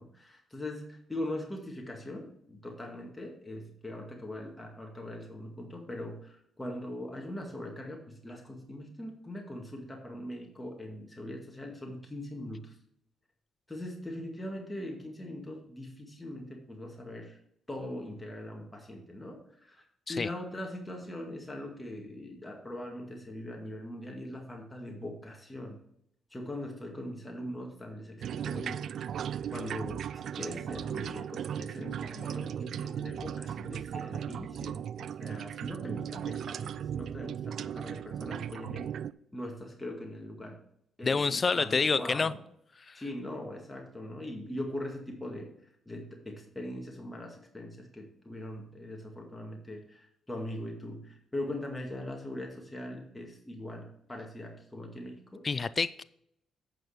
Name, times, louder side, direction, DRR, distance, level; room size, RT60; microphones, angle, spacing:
voice 1, 0.0-12.8 13.7-17.4 17.7-19.8 20.1-25.8 26.3-29.1 29.5-38.9 39.3-40.6 41.0-42.4 42.9-45.5 45.9-55.5, left 1 dB, 15° left, 1 dB, 2.0 m, -41 dB
sound 1, 28.2-39.1, right 9 dB, 70° right, 0.3 m, -37 dB
voice 2, 41.0-42.3 42.9-43.0 55.4-56.0, left 4 dB, 40° left, 17 dB, 0.4 m, -28 dB
8.9 x 6.2 x 4.9 m, 0.73 s
supercardioid pair, 65°, 0 cm